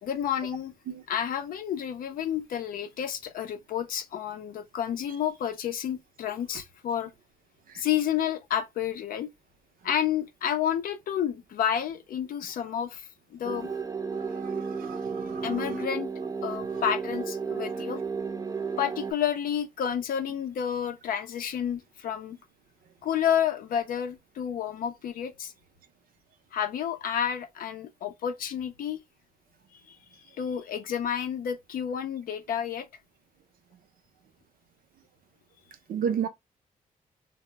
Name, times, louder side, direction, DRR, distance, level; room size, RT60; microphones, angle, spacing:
voice 1, 0.0-0.7 1.1-7.1 7.7-9.3 9.8-13.7 15.4-16.1 16.4-18.0 18.8-22.4 23.0-25.5 26.5-29.0 29.9-32.9, left 9 dB, 85° left, 0.5 m, -30 dB
sound 1, 13.4-19.1, right 5 dB, 25° right, 0.4 m, -33 dB
voice 2, 14.2-15.5 35.9-36.3, right 8 dB, 80° right, 0.5 m, -32 dB
2.0 x 2.0 x 3.2 m
cardioid pair, 80°, 15 cm